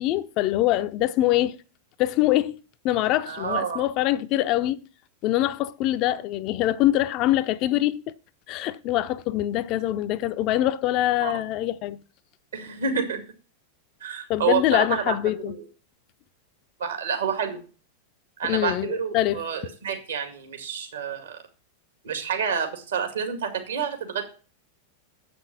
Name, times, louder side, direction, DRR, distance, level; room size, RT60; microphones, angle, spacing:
voice 1, 0.0-1.6 2.0-2.6 2.8-4.8 5.2-8.0 8.5-12.0 14.3-15.5 18.4-19.4, left 14 dB, 40° left, 0.5 m, -24 dB
voice 2, 3.3-3.9 6.1-6.2 11.2-11.3 12.5-13.2 14.0-15.2 15.5-15.6 16.8-17.6 18.4-21.4 22.0-24.2, right 6 dB, 65° right, 2.1 m, -28 dB
7.7 x 6.0 x 7.0 m
figure-of-eight pair, 90°, 0 cm